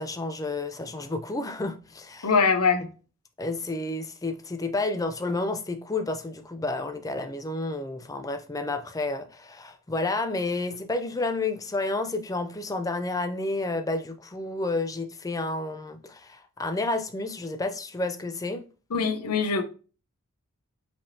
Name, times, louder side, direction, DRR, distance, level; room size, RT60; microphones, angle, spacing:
voice 1, 0.0-2.3 3.4-18.6, left 2 dB, 15° left, 0.4 m, -30 dB
voice 2, 2.2-2.9 18.9-19.6, left 5 dB, 85° left, 0.7 m, -23 dB
5.4 x 3.4 x 2.7 m
head